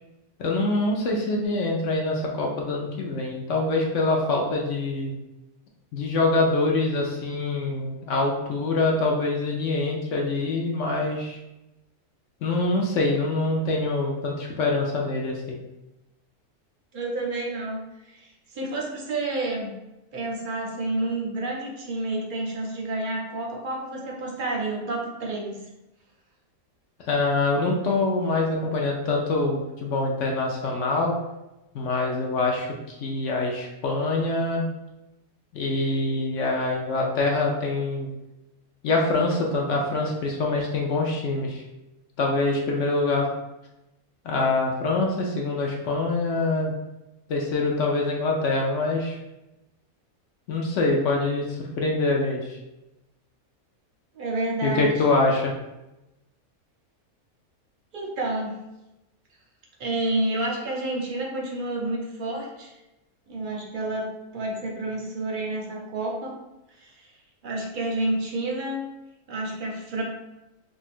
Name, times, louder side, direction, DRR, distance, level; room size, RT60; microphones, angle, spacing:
voice 1, 0.4-5.2 5.9-11.4 12.4-15.6 27.0-31.2 31.7-34.7 35.5-38.1 38.8-41.6 42.2-43.3 44.2-46.7 47.3-49.2 50.5-52.6 54.6-55.5, left 2 dB, 65° left, 0 dB, 0.8 m, -25 dB
voice 2, 16.9-17.8 18.1-18.3 18.5-19.7 20.1-25.6 54.1-55.0 57.9-58.6 59.8-62.7 63.3-66.3 66.8-66.9 67.4-68.8 69.3-70.0, right 2 dB, 55° right, -1 dB, 0.5 m, -29 dB
2.7 x 2.4 x 4.1 m, 0.95 s
omnidirectional pair, 1.6 m